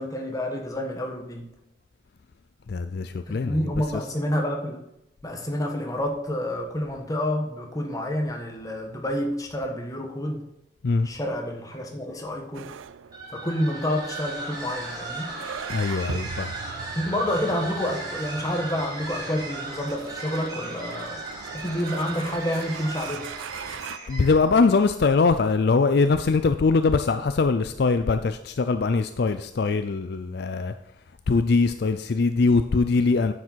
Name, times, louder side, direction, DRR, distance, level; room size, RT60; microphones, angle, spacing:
voice 1, 0.0-1.5 3.3-4.8 5.2-10.4 11.0-12.7 13.3-15.3 17.0-21.2 21.5-23.3, left 1 dB, 20° left, 2 dB, 1.3 m, -29 dB
voice 2, 2.7-3.6 10.8-11.1 15.7-16.5 24.1-30.7 31.3-33.3, left 4 dB, 55° left, 9 dB, 0.4 m, -22 dB
sound 1, 12.5-24.0, right 7 dB, 85° right, 0.4 m, -41 dB
sound 2, 13.1-24.5, right 2 dB, 20° right, 3.7 m, -36 dB
9.7 x 7.3 x 4.6 m, 0.88 s
head